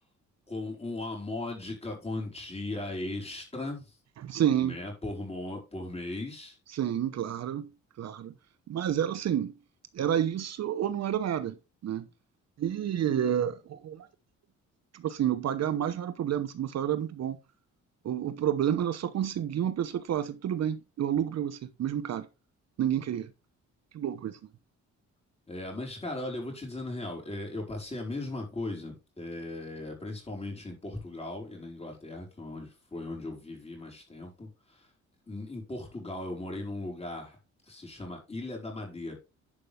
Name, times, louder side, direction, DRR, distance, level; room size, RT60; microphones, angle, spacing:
voice 1, 0.5-3.9 4.6-6.6 25.5-34.9 35.3-37.4 37.7-39.2, left 2 dB, 20° left, 4.8 m, -37 dB
voice 2, 4.2-4.8 6.7-7.7 8.0-8.3 8.7-9.5 9.9-11.6 11.8-12.1 12.6-14.1 14.9-17.4 18.0-22.3 22.8-23.3 23.9-24.4, right 10 dB, 60° right, 0.9 m, -29 dB
11.0 x 5.4 x 3.5 m
cardioid pair, 90°, 30 cm